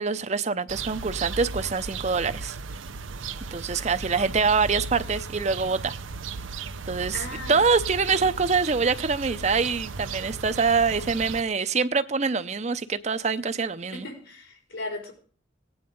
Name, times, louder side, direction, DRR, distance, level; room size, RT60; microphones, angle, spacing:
voice 1, 0.0-2.6 3.5-5.9 6.9-14.1, right 5 dB, 35° right, 0.6 m, -25 dB
sound 1, 0.7-11.4, right 5 dB, 85° right, 0.8 m, -36 dB
voice 2, 7.1-7.7 8.1-8.3 13.9-15.1, left 2 dB, 85° left, 4.9 m, -37 dB
17.5 x 9.6 x 5.3 m
head